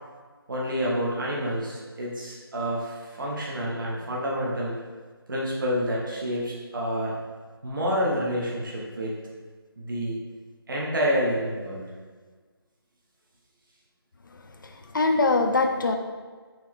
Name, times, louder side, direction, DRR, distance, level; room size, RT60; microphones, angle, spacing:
voice 1, 0.5-4.7 5.3-7.2 7.6-9.2 9.8-10.2 10.7-11.8, equal, 55° right, -4 dB, 1.0 m, -28 dB
voice 2, 14.6-15.9, left 3 dB, 50° left, 5 dB, 0.5 m, -23 dB
4.3 x 3.1 x 3.6 m, 1.5 s
figure-of-eight pair, 160°, 13 cm